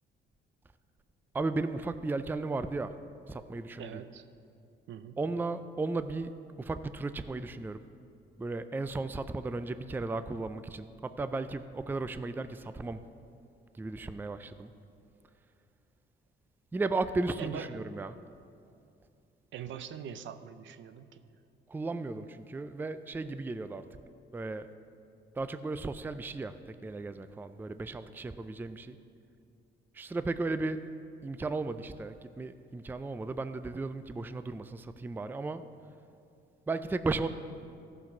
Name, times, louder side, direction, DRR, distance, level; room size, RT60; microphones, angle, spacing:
voice 1, 1.3-2.9 3.3-4.0 5.2-6.3 6.6-7.8 8.4-13.0 13.8-14.7 16.7-18.2 21.7-23.9 24.3-24.7 25.4-29.0 29.9-30.8 31.2-35.7 36.7-37.3, right 3 dB, 10° right, 11 dB, 0.4 m, -35 dB
voice 2, 3.8-4.3 4.9-5.2 17.4-17.8 19.5-21.2, right 8 dB, 70° right, 11 dB, 0.6 m, -42 dB
14.0 x 6.0 x 5.9 m, 2.5 s
cardioid pair, 90°, 20 cm